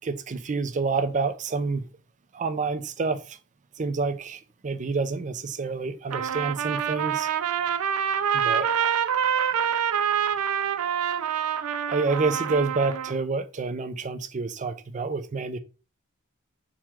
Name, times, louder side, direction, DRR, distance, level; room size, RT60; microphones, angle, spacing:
voice 1, 0.0-1.8 2.3-3.4 3.8-7.3 8.3-9.0 11.9-15.6, right 4 dB, 35° right, 0.5 m, -28 dB
Trumpet, 6.1-13.2, right 8 dB, 90° right, 0.4 m, -26 dB
3.9 x 2.9 x 4.5 m
head